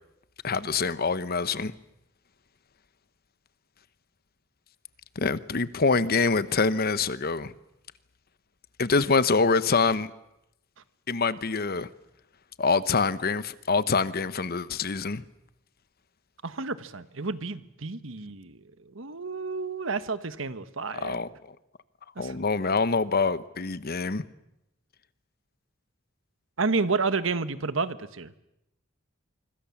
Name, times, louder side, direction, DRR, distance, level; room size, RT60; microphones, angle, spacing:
voice 1, 0.4-1.7 5.1-7.5 8.8-10.1 11.1-11.9 12.6-15.2 20.9-21.3 22.2-24.2, left 4 dB, 50° left, 1.0 m, -25 dB
voice 2, 16.4-18.6 18.9-21.2 22.2-22.3 26.6-28.3, right 4 dB, 70° right, 1.4 m, -30 dB
25.5 x 25.5 x 7.2 m
head